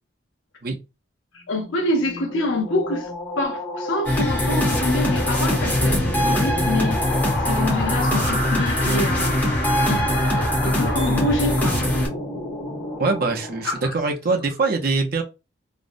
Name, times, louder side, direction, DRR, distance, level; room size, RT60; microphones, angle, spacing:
voice 1, 1.3-3.1 3.4-9.4 9.9-11.8 13.6-13.9, left 2 dB, 80° left, 0.7 m, -26 dB
sound 1, 1.5-14.1, left 1 dB, 50° left, 0.9 m, -29 dB
sound 2, 4.1-12.1, left 1 dB, 10° left, 0.6 m, -22 dB
voice 2, 13.0-15.2, right 3 dB, 50° right, 0.5 m, -23 dB
2.5 x 2.0 x 2.5 m
head